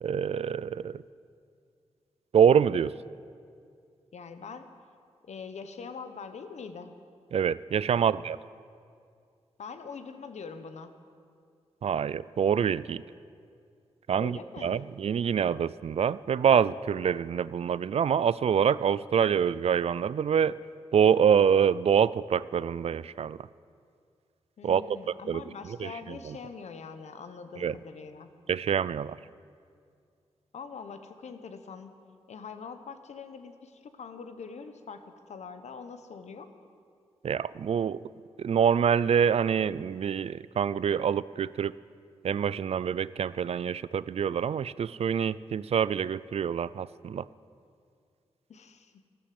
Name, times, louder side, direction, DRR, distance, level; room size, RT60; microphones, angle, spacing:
voice 1, 0.0-1.0 2.3-2.9 7.3-8.4 11.8-13.0 14.1-20.5 20.9-23.4 24.6-25.0 25.3-25.4 25.8-25.9 26.2-26.4 27.6-27.7 28.5-29.2 37.2-38.0 38.4-41.7 42.2-47.2, right 7 dB, 60° right, 19 dB, 0.4 m, -26 dB
voice 2, 4.1-4.7 5.2-7.0 7.9-8.1 9.6-11.0 14.1-14.9 24.6-28.3 30.5-31.9 32.3-36.5 48.5-48.9, left 5 dB, 80° left, 9 dB, 1.0 m, -43 dB
13.5 x 12.5 x 7.7 m, 2.3 s
cardioid pair, 70°, 12 cm